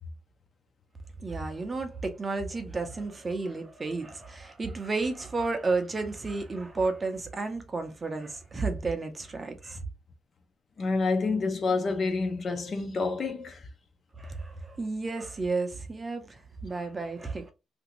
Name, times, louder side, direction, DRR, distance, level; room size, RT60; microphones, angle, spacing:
voice 1, 1.2-9.8 14.2-17.5, right 3 dB, 20° right, 0.5 m, -32 dB
voice 2, 10.8-13.6, left 3 dB, 30° left, 0.5 m, -28 dB
3.0 x 2.5 x 2.9 m
cardioid pair, 170°, 0 cm